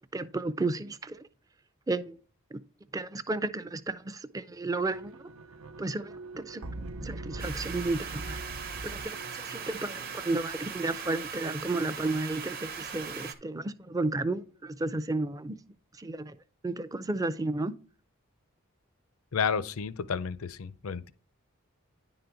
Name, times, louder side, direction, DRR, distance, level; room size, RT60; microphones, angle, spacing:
voice 1, 0.1-1.2 1.9-2.2 2.5-2.6 2.9-5.3 5.8-6.6 7.0-8.4 8.8-15.6 15.9-16.4 16.6-17.7, right 2 dB, 15° right, 0.4 m, -33 dB
sound 1, 4.8-10.2, right 2 dB, 75° right, 0.6 m, -42 dB
sound 2, 7.4-13.3, right 6 dB, 40° right, 0.9 m, -39 dB
voice 2, 19.3-21.1, left 6 dB, 80° left, 0.5 m, -31 dB
10.5 x 3.9 x 4.5 m
head